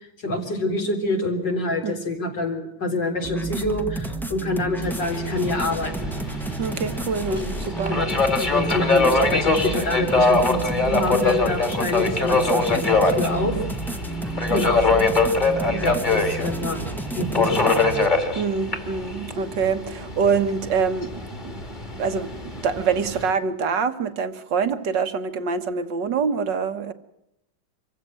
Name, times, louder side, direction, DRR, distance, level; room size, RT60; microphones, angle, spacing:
voice 1, 0.2-6.1 7.3-7.6 7.9-13.6 14.5-14.8 15.8-16.9 17.1-17.7, left 2 dB, 55° left, 2 dB, 4.4 m, -26 dB
sound 1, 3.2-18.1, right 3 dB, ahead, 1.1 m, -31 dB
Subway metro underground, 4.8-23.3, left 3 dB, 20° left, 2.8 m, -24 dB
voice 2, 6.6-8.0 14.5-15.1 15.7-15.9 18.4-21.5 22.0-26.9, right 5 dB, 60° right, 10 dB, 1.9 m, -25 dB
25.5 x 15.5 x 7.7 m, 0.85 s
omnidirectional pair, 2.3 m